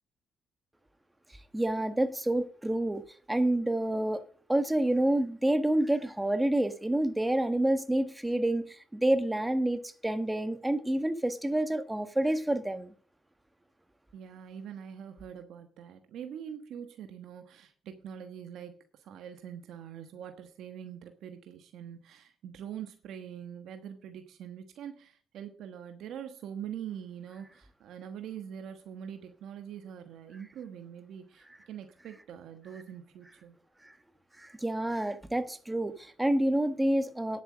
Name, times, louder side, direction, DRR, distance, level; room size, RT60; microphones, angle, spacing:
voice 1, 1.5-4.2 4.5-12.9 34.4-37.4, right 1 dB, 10° right, 1.4 m, -28 dB
voice 2, 14.1-33.6, right 9 dB, 80° right, 1.2 m, -44 dB
10.5 x 7.8 x 6.2 m
cardioid pair, 90°, 0 cm